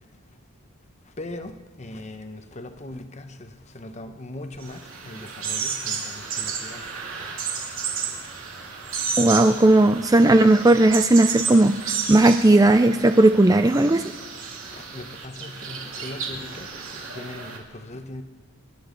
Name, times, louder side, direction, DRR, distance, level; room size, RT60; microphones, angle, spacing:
voice 1, 1.2-6.8 14.7-18.2, left 1 dB, 30° left, 0.9 m, -39 dB
sound 1, 4.6-17.6, right 6 dB, 65° right, 2.6 m, -32 dB
voice 2, 9.2-14.0, right 2 dB, 15° right, 0.3 m, -16 dB
27.5 x 12.0 x 3.9 m
head